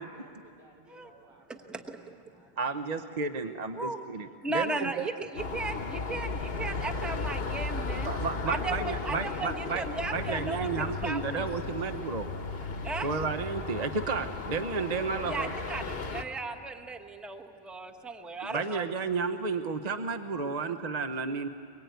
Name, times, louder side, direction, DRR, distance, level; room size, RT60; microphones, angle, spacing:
voice 1, 0.0-2.7 3.0-3.5, right 1 dB, 80° right, 0 dB, 4.5 m, -60 dB
voice 2, 1.5-2.2 3.7-4.0 4.4-8.1 8.4-11.5 12.8-13.1 15.3-18.9, right 3 dB, ahead, 4 dB, 1.0 m, -36 dB
voice 3, 2.6-5.1 8.0-9.8 10.1-12.3 13.0-15.5 18.4-21.5, right 4 dB, 45° right, 7 dB, 0.9 m, -32 dB
sound 1, 5.4-16.2, left 3 dB, 65° left, 1.4 m, -35 dB
23.5 x 22.5 x 9.3 m, 2.4 s
omnidirectional pair, 1.1 m